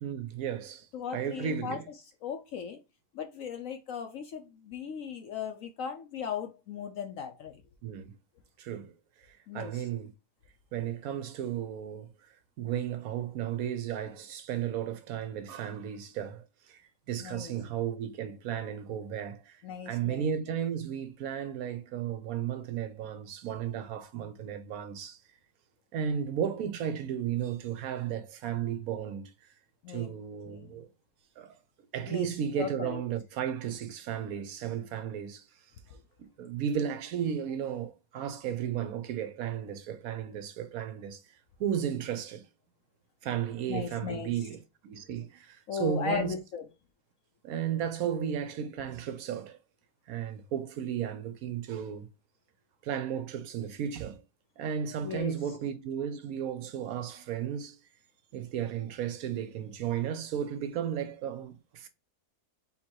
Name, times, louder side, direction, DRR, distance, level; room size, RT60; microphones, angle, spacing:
voice 1, 0.0-0.9 1.1-1.9 7.8-8.2 8.6-8.9 9.3-10.1 10.7-12.1 12.6-16.8 17.1-25.2 25.9-29.3 29.9-30.9 31.4-31.6 31.9-35.5 36.2-41.2 41.6-42.5 43.2-46.3 47.4-49.6 50.1-52.1 52.8-54.2 54.6-57.8 58.3-61.9, right 9 dB, 70° right, 1.1 m, -34 dB
voice 2, 0.9-1.8 2.2-2.8 3.1-7.6 9.5-9.9 17.2-17.5 19.6-20.3 29.8-30.1 30.5-30.8 32.1-32.3 32.6-33.0 43.7-44.3 45.7-46.7 55.0-55.4, left 7 dB, 65° left, 1.0 m, -37 dB
3.8 x 2.9 x 4.4 m
omnidirectional pair, 1.6 m